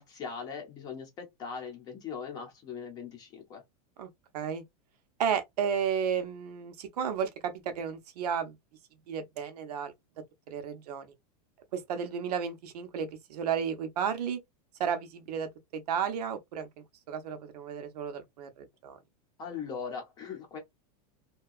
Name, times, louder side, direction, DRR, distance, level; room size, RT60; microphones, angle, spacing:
voice 1, 0.0-3.6 19.4-20.6, left 6 dB, 20° left, 0.7 m, -40 dB
voice 2, 5.2-8.6 9.1-9.9 10.5-11.1 11.7-14.4 14.8-19.0, right 7 dB, 85° right, 0.7 m, -33 dB
2.7 x 2.2 x 2.4 m
supercardioid pair, 175°, 20 cm